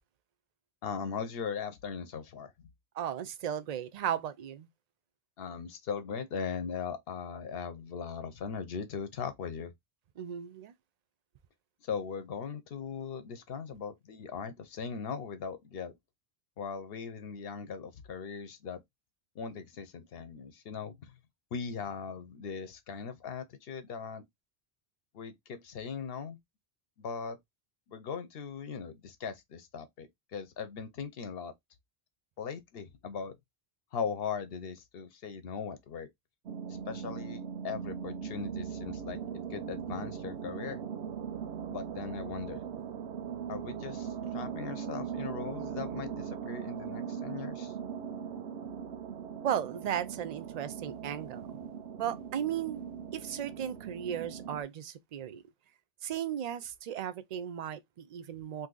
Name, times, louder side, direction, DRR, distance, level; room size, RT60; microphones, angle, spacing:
voice 1, 0.8-2.7 5.4-9.7 11.8-15.9 16.6-18.8 19.3-21.1 21.5-24.2 25.1-26.4 27.0-27.4 27.9-31.5 32.4-33.4 33.9-36.1 36.9-39.2 39.5-40.8 41.7-42.6 43.5-47.7, left 6 dB, 70° left, 0.9 m, -39 dB
voice 2, 2.9-4.7 10.2-10.7 49.4-51.6 52.0-52.8 53.1-55.4 56.0-58.7, right 9 dB, 55° right, 0.5 m, -35 dB
sound 1, 36.5-54.6, right 7 dB, 90° right, 0.8 m, -40 dB
2.7 x 2.6 x 3.7 m
omnidirectional pair, 1.0 m